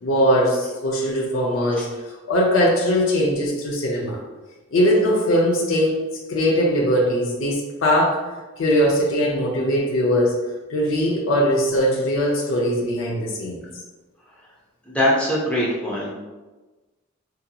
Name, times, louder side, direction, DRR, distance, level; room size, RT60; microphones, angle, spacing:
voice 1, 0.0-4.2 4.7-6.0 6.3-10.4 10.7-13.6, equal, 75° left, -2 dB, 0.5 m, -20 dB
voice 2, 14.9-16.1, equal, 5° left, -5 dB, 0.5 m, -22 dB
2.8 x 2.6 x 2.2 m, 1.2 s
head